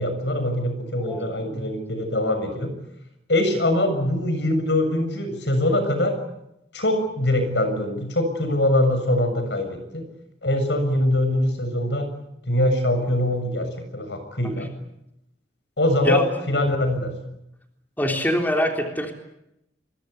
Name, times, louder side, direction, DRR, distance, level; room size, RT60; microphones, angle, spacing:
voice 1, 0.0-2.7 3.3-6.2 6.7-10.0 10.4-12.1 12.5-14.7 15.8-17.1, left 1 dB, 75° left, 8 dB, 7.2 m, -23 dB
voice 2, 1.0-1.6 14.4-14.7 16.0-16.3 18.0-19.1, left 1 dB, 10° left, 3 dB, 3.6 m, -25 dB
26.0 x 23.0 x 8.3 m, 0.84 s
head